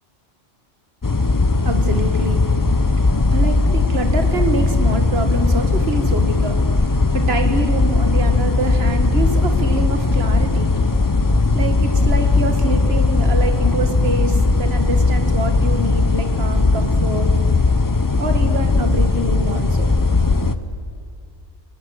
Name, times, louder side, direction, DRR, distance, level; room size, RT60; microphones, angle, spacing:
sound 1, 1.0-20.6, left 3 dB, 20° left, 0.6 m, -18 dB
voice 1, 1.6-10.7 11.5-17.3 18.2-20.0, right 2 dB, 55° right, 6 dB, 2.0 m, -26 dB
30.0 x 18.0 x 6.4 m, 2.3 s
omnidirectional pair, 1.3 m